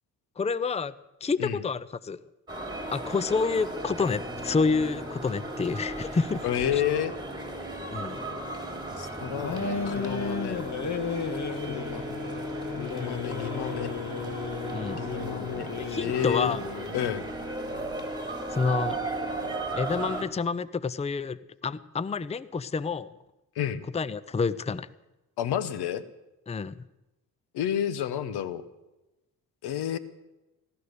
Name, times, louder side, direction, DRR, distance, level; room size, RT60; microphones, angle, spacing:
voice 1, 0.4-0.9 1.2-2.2 2.9-6.4 7.9-8.2 14.7-15.0 15.8-16.6 18.5-19.0 19.7-23.1 23.9-24.9 26.5-26.9, left 4 dB, 15° left, 18 dB, 0.6 m, -28 dB
sound 1, 2.5-20.2, right 2 dB, 10° right, 3.7 m, -36 dB
voice 2, 6.4-7.1 9.0-10.6 11.7-12.0 12.8-13.9 14.9-15.7 16.0-16.5 16.9-17.3 23.5-23.8 25.4-26.0 27.5-28.6 29.6-30.0, left 10 dB, 75° left, 15 dB, 1.2 m, -30 dB
sound 2, 9.4-17.1, left 5 dB, 45° left, 1.9 m, -34 dB
16.5 x 13.0 x 6.7 m, 1.0 s
supercardioid pair, 60°, 39 cm